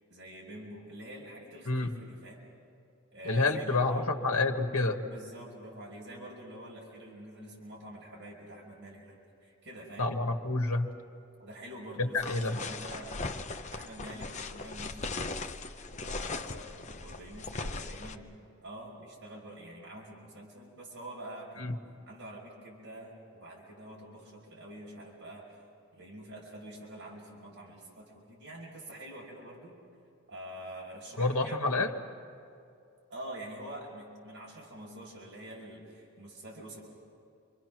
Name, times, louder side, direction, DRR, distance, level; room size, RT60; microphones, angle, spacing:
voice 1, 0.1-2.5 3.1-4.2 5.0-9.2 9.4-10.2 11.4-13.3 13.7-15.2 15.9-18.4 18.6-21.7 22.1-25.5 25.9-29.8 30.3-31.8 33.1-36.8, right 1 dB, 55° right, -3 dB, 5.2 m, -46 dB
voice 2, 3.2-5.0 10.0-10.9 12.0-12.6 21.6-21.7 31.2-31.9, left 3 dB, 80° left, 3 dB, 1.6 m, -28 dB
sound 1, 12.2-18.1, left 3 dB, 30° left, 0.7 m, -39 dB
28.5 x 24.0 x 6.2 m, 2.5 s
head